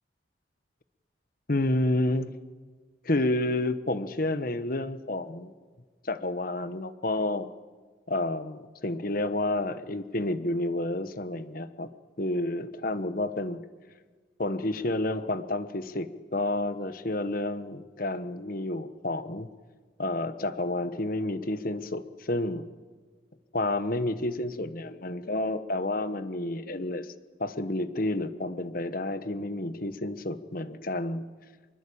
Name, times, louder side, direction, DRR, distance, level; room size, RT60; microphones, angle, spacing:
voice 1, 1.5-2.3 3.0-5.5 6.0-7.5 8.1-11.9 12.2-13.6 14.4-19.5 20.0-22.7 23.5-27.1 27.4-31.3, left 2 dB, 45° left, 11 dB, 1.3 m, -30 dB
26.0 x 22.5 x 8.8 m, 1.4 s
head